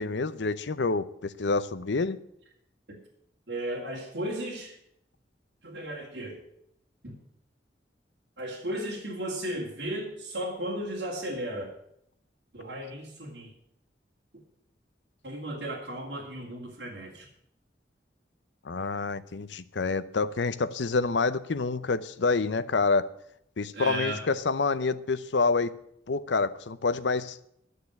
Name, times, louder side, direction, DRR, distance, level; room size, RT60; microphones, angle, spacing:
voice 1, 0.0-2.2 18.6-23.1 23.6-25.8 26.1-27.4, left 4 dB, 85° left, 15 dB, 0.7 m, -27 dB
voice 2, 3.5-4.8 5.6-6.4 7.0-7.2 8.4-11.7 12.5-13.5 15.2-17.3 23.7-24.2, right 1 dB, 65° right, -5 dB, 2.6 m, -35 dB
11.5 x 6.7 x 9.6 m, 0.73 s
head